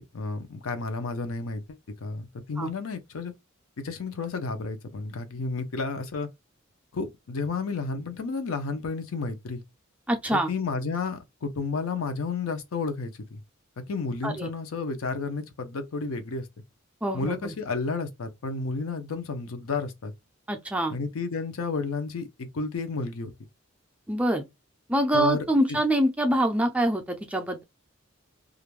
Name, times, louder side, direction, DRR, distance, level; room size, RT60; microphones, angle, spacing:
voice 1, 0.0-3.3 3.8-6.3 6.9-9.6 10.3-13.4 13.9-16.5 17.1-20.1 20.9-23.3 25.1-25.8, left 4 dB, 85° left, 0.6 m, -32 dB
voice 2, 10.1-10.5 14.2-14.5 17.0-17.5 20.5-20.9 24.1-24.5 24.9-27.6, right 1 dB, 5° right, 0.3 m, -25 dB
2.4 x 2.1 x 3.1 m
head